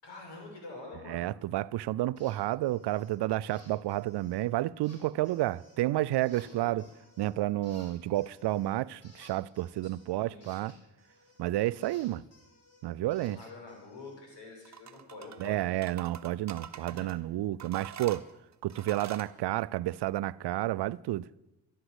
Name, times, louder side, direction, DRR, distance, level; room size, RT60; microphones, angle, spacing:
voice 1, 0.0-1.3 6.3-6.8 10.1-10.8 13.0-15.9 16.7-17.1, left 2 dB, 70° left, 7.1 m, -47 dB
voice 2, 1.1-6.8 7.2-10.8 11.4-12.2 12.8-13.4 15.4-18.3 18.6-21.3, right 15 dB, 65° right, 0.5 m, -31 dB
sound 1, 2.2-2.4 2.6-3.1 3.5-4.4 4.8-5.8 6.3-7.4 7.6-11.4 11.8-14.2, left 1 dB, 35° left, 5.7 m, -59 dB
sound 2, 14.6-15.5 15.8-17.2 17.6-19.3, right 7 dB, 40° right, 1.1 m, -45 dB
12.5 x 11.0 x 8.0 m
cardioid pair, 75°, 43 cm